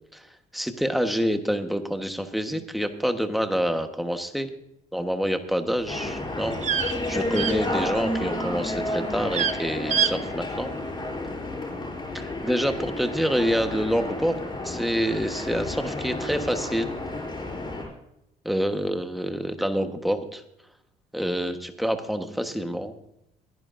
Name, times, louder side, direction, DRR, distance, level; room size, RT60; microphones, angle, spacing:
voice 1, 0.5-4.5 4.9-10.7 12.1-16.9 18.4-20.4 21.1-22.9, equal, ahead, 7 dB, 1.3 m, -27 dB
sound 1, 5.8-8.3 8.5-8.9 9.2-9.6 9.9-10.1 10.4-10.5, right 8 dB, 45° right, 0.9 m, -27 dB
sound 2, 5.9-17.9, left 2 dB, 25° left, 5.9 m, -31 dB
21.5 x 10.5 x 2.6 m, 0.80 s
cardioid pair, 110°, 17 cm